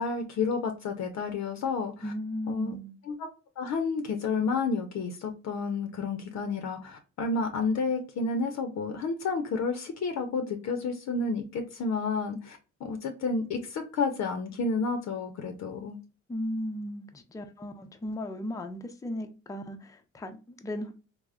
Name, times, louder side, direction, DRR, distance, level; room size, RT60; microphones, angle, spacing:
voice 1, 0.0-2.1 2.5-2.7 3.1-3.3 3.6-16.0, left 4 dB, 65° left, 0.5 m, -30 dB
voice 2, 2.0-2.9 16.3-20.9, left 1 dB, 10° left, 0.4 m, -36 dB
3.4 x 2.0 x 2.3 m
cardioid pair, 90°, 30 cm